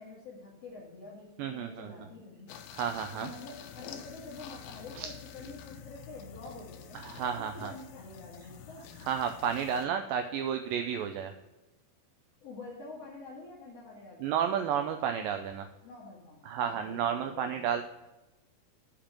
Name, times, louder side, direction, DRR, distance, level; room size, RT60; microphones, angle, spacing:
voice 1, 0.0-2.6 3.1-7.0 7.4-8.9 12.4-14.3 15.8-17.8, left 3 dB, 45° left, -6 dB, 2.3 m, -47 dB
voice 2, 1.4-1.9 2.7-3.3 5.0-5.1 7.0-7.7 9.1-11.3 14.2-15.7 16.5-17.8, right 8 dB, 90° right, 7 dB, 2.0 m, -32 dB
sound 1, 2.5-9.9, left 8 dB, 80° left, 2.1 m, -48 dB
7.2 x 5.1 x 7.2 m, 1.1 s
omnidirectional pair, 4.6 m